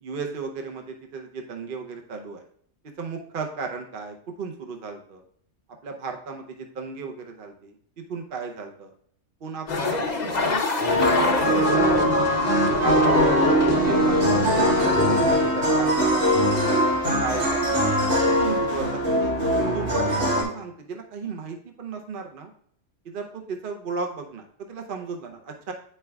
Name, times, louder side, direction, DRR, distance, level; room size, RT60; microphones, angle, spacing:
voice 1, 0.0-2.4 3.0-5.2 5.8-7.7 8.1-8.9 9.4-12.1 12.6-14.3 14.8-15.2 15.5-16.4 16.9-17.8 18.4-19.4 19.7-22.5 23.1-25.7, right 4 dB, 50° right, 3 dB, 0.8 m, -35 dB
sound 1, 9.7-15.8, left 3 dB, 40° left, 0.7 m, -26 dB
sound 2, 10.8-20.4, right 1 dB, 80° right, 2.5 m, -21 dB
8.6 x 5.5 x 2.3 m, 0.64 s
omnidirectional pair, 1.3 m